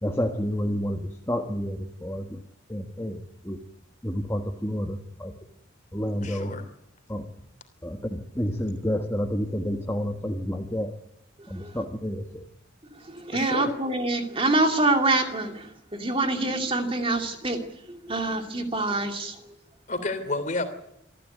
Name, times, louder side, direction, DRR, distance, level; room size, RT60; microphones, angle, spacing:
voice 1, 0.0-2.4 2.7-3.6 4.0-5.3 5.9-6.5 7.1-7.3 7.8-10.9 11.5-12.4, equal, 15° left, 3 dB, 1.6 m, -30 dB
voice 2, 6.2-6.6 13.3-13.7 19.9-20.7, left 2 dB, 40° left, 9 dB, 3.2 m, -30 dB
voice 3, 13.1-19.4, right 2 dB, 30° right, 4 dB, 2.4 m, -26 dB
26.0 x 14.0 x 9.4 m, 0.81 s
head